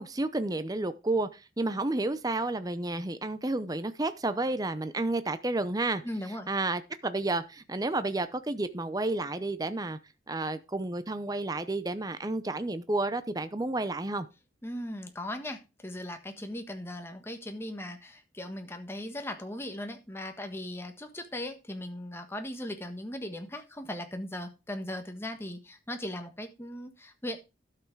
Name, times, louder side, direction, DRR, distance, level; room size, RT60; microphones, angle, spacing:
voice 1, 0.0-6.0 6.5-10.0 10.3-14.3, right 2 dB, 20° right, 0.6 m, -31 dB
voice 2, 6.0-6.5 14.6-27.4, left 1 dB, 15° left, 1.4 m, -38 dB
12.5 x 5.9 x 4.6 m
head